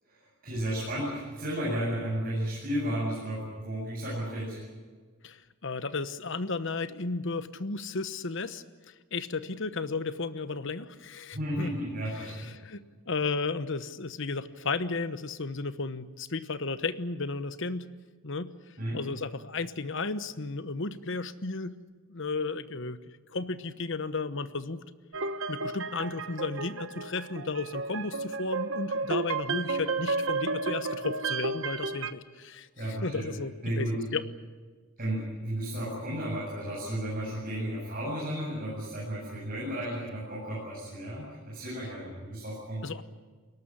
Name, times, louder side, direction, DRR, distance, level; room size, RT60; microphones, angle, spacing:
voice 1, 0.4-4.6 11.3-12.5 18.8-19.0 32.8-33.3 33.6-34.0 35.0-42.8, right 1 dB, 40° right, -5 dB, 8.0 m, -33 dB
voice 2, 5.2-8.6 9.1-11.7 12.1-17.9 18.2-18.5 18.9-21.8 22.1-23.0 23.3-24.8 25.5-33.9 34.1-34.2 42.8-43.0, left 3 dB, 60° left, 13 dB, 1.1 m, -34 dB
sound 1, 25.1-32.1, right 3 dB, 60° right, 1.2 m, -32 dB
22.0 x 19.0 x 10.0 m, 1.5 s
head